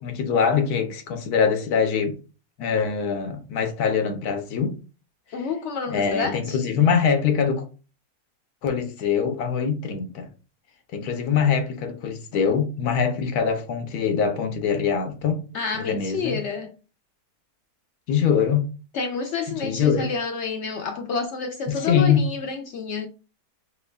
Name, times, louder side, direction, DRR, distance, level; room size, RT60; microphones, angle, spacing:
voice 1, 0.0-2.2 2.6-4.7 5.9-7.6 8.6-10.3 10.9-15.4 15.7-16.4 18.1-18.6 19.5-20.1 21.7-22.2, left 6 dB, 90° left, 1.2 m, -23 dB
voice 2, 5.3-6.6 15.5-16.7 18.9-23.1, left 5 dB, 65° left, 0.7 m, -29 dB
4.5 x 3.1 x 2.3 m
omnidirectional pair, 1.6 m